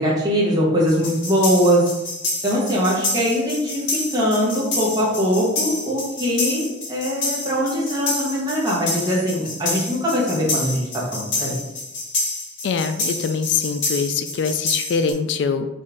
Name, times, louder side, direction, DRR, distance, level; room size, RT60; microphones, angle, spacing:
voice 1, 0.0-1.9 2.4-11.6, equal, 20° right, -5 dB, 1.2 m, -21 dB
sound 1, 0.9-15.1, left 2 dB, 90° left, 1.3 m, -28 dB
voice 2, 12.6-15.7, left 5 dB, 65° left, 9 dB, 0.3 m, -23 dB
3.9 x 3.2 x 3.6 m, 0.95 s
head